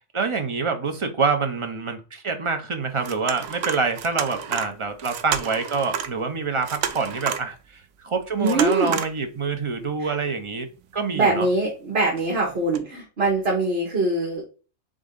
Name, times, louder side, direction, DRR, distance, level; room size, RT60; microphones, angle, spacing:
voice 1, 0.1-11.5, right 4 dB, 35° right, 6 dB, 0.5 m, -26 dB
sound 1, 2.9-6.2 6.4-7.6 8.4-9.2 9.6-9.7 10.8-11.1 12.2-12.3 12.7-12.8, right 8 dB, 90° right, 1.0 m, -31 dB
voice 2, 8.4-9.0 10.0-10.1 11.1-14.5, right 2 dB, 50° right, -2 dB, 1.5 m, -23 dB
3.8 x 3.6 x 3.7 m, 0.34 s
omnidirectional pair, 1.3 m